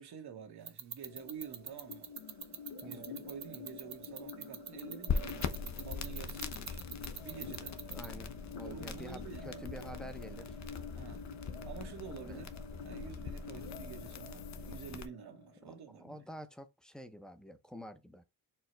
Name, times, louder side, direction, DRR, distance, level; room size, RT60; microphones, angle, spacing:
voice 1, 0.0-2.1 2.8-6.8 7.2-7.8 8.6-9.6 10.9-11.3 11.7-12.5 12.8-16.2, right 7 dB, 85° right, 1.1 m, -48 dB
sound 1, 0.7-8.2, right 8 dB, 45° right, 0.6 m, -42 dB
sound 2, 1.1-16.0, left 4 dB, 80° left, 1.0 m, -49 dB
voice 2, 2.8-3.2 7.9-10.6 12.3-12.4 15.7-15.8 16.0-18.2, equal, ahead, 0.6 m, -48 dB
sound 3, 5.1-15.1, left 6 dB, 50° left, 0.6 m, -41 dB
4.5 x 2.1 x 4.3 m
cardioid pair, 75°, 38 cm